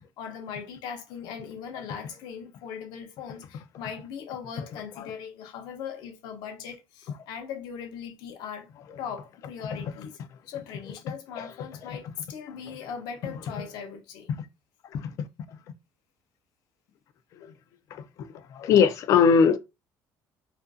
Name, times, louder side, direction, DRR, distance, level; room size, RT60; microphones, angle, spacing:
voice 1, 0.2-8.7 9.0-10.2 10.5-14.3, left 7 dB, 80° left, 0.7 m, -39 dB
voice 2, 18.5-19.6, left 6 dB, 50° left, 0.3 m, -21 dB
2.5 x 2.4 x 2.3 m
cardioid pair, 165°, 7 cm